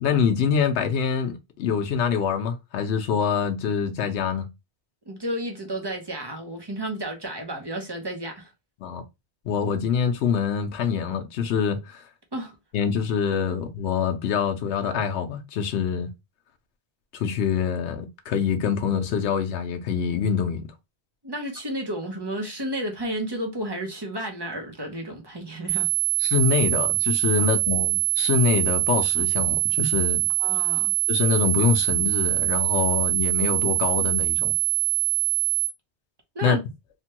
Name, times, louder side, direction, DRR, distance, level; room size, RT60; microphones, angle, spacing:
voice 1, 0.0-4.5 8.8-9.0 9.4-12.0 12.7-16.1 17.1-20.7 26.2-30.3 31.1-34.5 36.4-36.6, left 7 dB, 80° left, 0.9 m, -25 dB
voice 2, 5.1-8.5 12.3-12.5 21.2-25.9 27.4-27.5 30.4-30.9 36.3-36.6, right 1 dB, 25° right, 0.7 m, -32 dB
sound 1, 25.7-35.7, right 30 dB, 90° right, 0.9 m, -23 dB
3.3 x 2.2 x 2.8 m
omnidirectional pair, 1.1 m